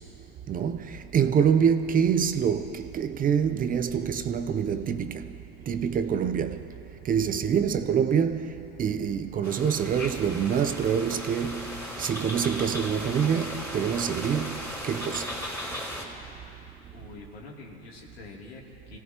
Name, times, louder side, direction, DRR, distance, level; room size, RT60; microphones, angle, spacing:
voice 1, 0.5-5.3 5.7-6.7 7.0-8.5 8.8-15.3, right 7 dB, 30° right, 0.7 m, -26 dB
sound 1, 9.4-16.1, equal, 5° left, 3.9 m, -37 dB
voice 2, 16.9-19.0, left 3 dB, 85° left, 3.0 m, -45 dB
24.0 x 16.5 x 3.0 m
hypercardioid pair, 100°, 30 cm